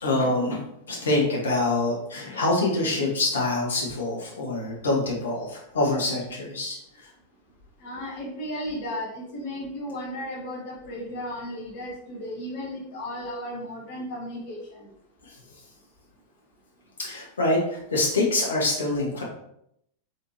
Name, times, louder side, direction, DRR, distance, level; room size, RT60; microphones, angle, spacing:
voice 1, 0.0-6.8 15.2-15.3 17.0-19.2, left 2 dB, 65° left, -3 dB, 1.4 m, -25 dB
voice 2, 7.8-14.9, left 1 dB, 45° left, -4 dB, 1.3 m, -35 dB
4.3 x 3.4 x 2.9 m, 0.75 s
figure-of-eight pair, 90°, 0 cm